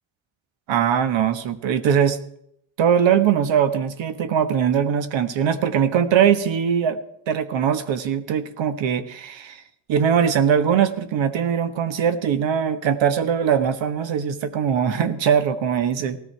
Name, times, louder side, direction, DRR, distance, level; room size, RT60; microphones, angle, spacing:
voice 1, 0.7-2.2 2.8-7.0 7.3-9.6 9.9-16.2, right 8 dB, 65° right, 10 dB, 1.5 m, -21 dB
18.5 x 13.5 x 4.6 m, 0.70 s
cardioid pair, 95°, 49 cm